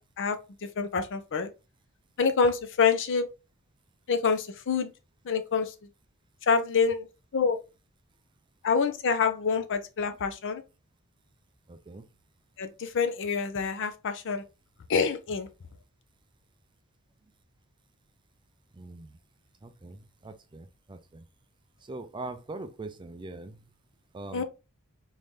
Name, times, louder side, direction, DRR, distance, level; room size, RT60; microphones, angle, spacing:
voice 1, 0.8-1.5 2.2-3.3 4.1-4.9 5.2-5.7 6.4-7.1 7.3-7.6 8.6-10.6 12.6-14.4 14.9-15.5 24.3-24.4, left 5 dB, 60° left, 0.6 m, -26 dB
voice 2, 11.7-12.1 18.7-19.2 19.6-21.3 21.8-23.6 24.1-24.4, right 2 dB, 20° right, 0.4 m, -42 dB
3.2 x 2.7 x 3.6 m
head